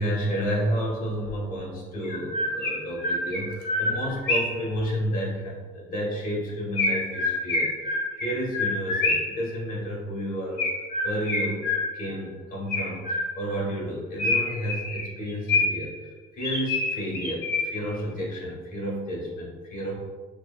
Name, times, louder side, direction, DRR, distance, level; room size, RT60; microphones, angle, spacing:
voice 1, 0.0-10.6 11.0-11.7 11.9-15.9 16.3-20.0, equal, 55° left, -3 dB, 1.4 m, -31 dB
Chirp tweet, 1.3-1.4 2.0-4.7 6.8-9.4 10.6-12.2 12.7-13.6 14.2-15.9 16.4-17.9, left 2 dB, 70° left, 1.0 m, -27 dB
5.9 x 2.3 x 2.4 m, 1.4 s
cardioid pair, 110°, 17 cm